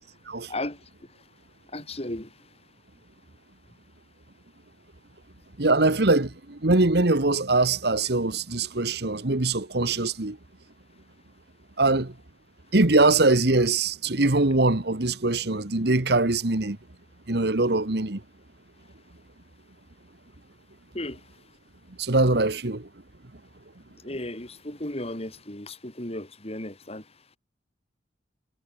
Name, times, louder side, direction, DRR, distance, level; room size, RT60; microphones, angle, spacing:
voice 1, 0.5-0.8 1.7-2.3 11.9-12.0 20.9-21.2 24.0-27.0, left 1 dB, 35° left, 4.7 m, -35 dB
voice 2, 5.6-10.4 11.8-12.1 12.7-16.8 17.3-18.2 22.0-22.9, right 2 dB, 65° right, 1.6 m, -22 dB
head